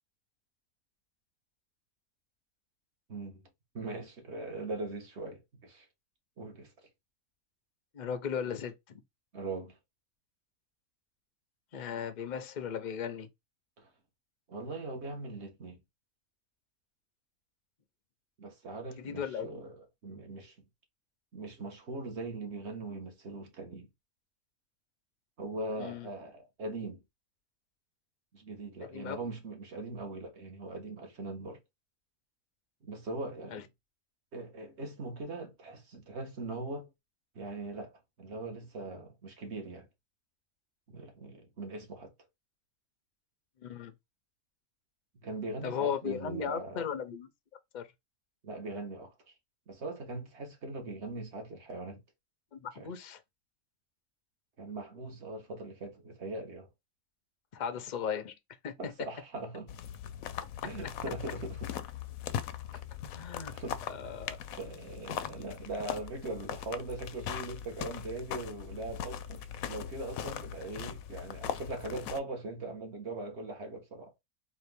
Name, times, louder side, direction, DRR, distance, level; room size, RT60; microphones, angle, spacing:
voice 1, 3.1-3.4 3.7-5.9 6.4-6.7 9.3-9.8 13.8-13.9 14.5-15.8 18.4-19.7 20.0-20.6 21.3-23.9 25.4-27.0 28.3-31.6 32.8-33.7 34.3-36.9 37.3-39.9 40.9-42.1 45.2-46.8 48.4-49.3 49.7-52.0 52.8-52.9 54.6-56.7 58.8-59.7 60.6-61.7 63.5-64.2 64.6-74.1, right 2 dB, 50° right, 1.5 m, -40 dB
voice 2, 7.9-9.0 11.7-13.3 19.0-19.6 25.8-26.1 28.9-29.2 33.5-33.6 43.6-43.9 45.6-47.3 47.7-47.9 52.5-53.2 57.5-58.3 58.6-58.9 63.1-63.5 63.9-64.4, left 7 dB, 50° left, 0.5 m, -36 dB
sound 1, 59.7-72.2, left 9 dB, 75° left, 0.9 m, -40 dB
4.2 x 2.7 x 3.4 m
omnidirectional pair, 1.6 m